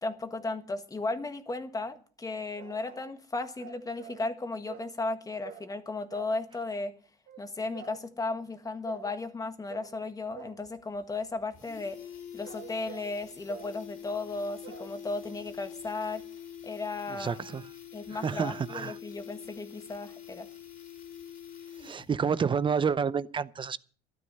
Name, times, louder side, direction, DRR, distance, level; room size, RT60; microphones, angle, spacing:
voice 1, 0.0-6.9 7.4-12.0 12.3-16.2 16.6-17.4 17.9-20.5, left 3 dB, 20° left, 1.6 m, -35 dB
sound 1, 2.6-3.2 3.6-4.3 4.7-5.0 5.4-5.7 6.1-6.4 7.3-7.5 7.7-8.0 8.9-9.1 9.7-10.0 10.3-10.7 12.2-13.2 13.5-13.8 14.6-14.9, right 9 dB, 70° right, 1.7 m, -47 dB
sound 2, 10.6-10.7 11.0-11.1 11.4-22.2 22.5-22.6, left 9 dB, 55° left, 3.4 m, -45 dB
voice 2, 17.2-17.6 18.1-19.0 21.8-23.8, right 6 dB, 30° right, 0.7 m, -29 dB
13.0 x 12.5 x 5.5 m
cardioid pair, 110°, 17 cm